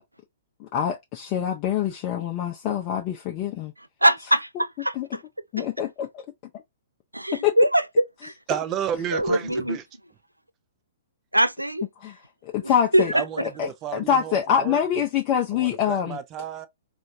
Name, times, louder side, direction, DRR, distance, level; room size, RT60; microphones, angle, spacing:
voice 1, 0.6-3.7 5.0-5.1 5.5-6.1 7.4-7.5 12.0-12.1 12.4-13.1 13.6-16.2, left 9 dB, 30° left, 0.6 m, -25 dB
voice 2, 3.8-5.2 7.1-8.3 9.1-9.8 11.3-11.9 12.6-13.3, right 1 dB, 85° right, 0.4 m, -23 dB
voice 3, 8.5-9.8 13.1-13.4 13.8-14.8 15.5-16.7, right 9 dB, 25° right, 0.5 m, -31 dB
4.1 x 2.4 x 2.5 m
figure-of-eight pair, 115°, 0 cm